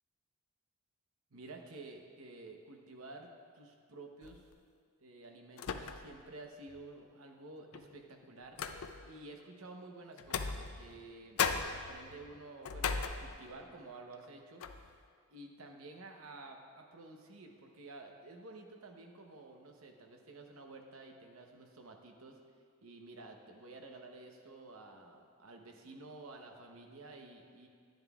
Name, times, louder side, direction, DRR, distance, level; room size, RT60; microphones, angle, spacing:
voice 1, 1.3-3.3 3.5-4.4 5.0-8.7 9.1-14.7 15.3-22.4 22.8-27.7, right 2 dB, 75° right, 3 dB, 0.9 m, -51 dB
sound 1, 4.2-4.5 5.6-6.3 6.7-6.8 7.7-9.2 10.2-11.1 11.4-13.7 14.1-14.3 14.6-14.9, left 6 dB, 80° left, 0.5 m, -38 dB
11.0 x 10.5 x 2.4 m, 2.1 s
head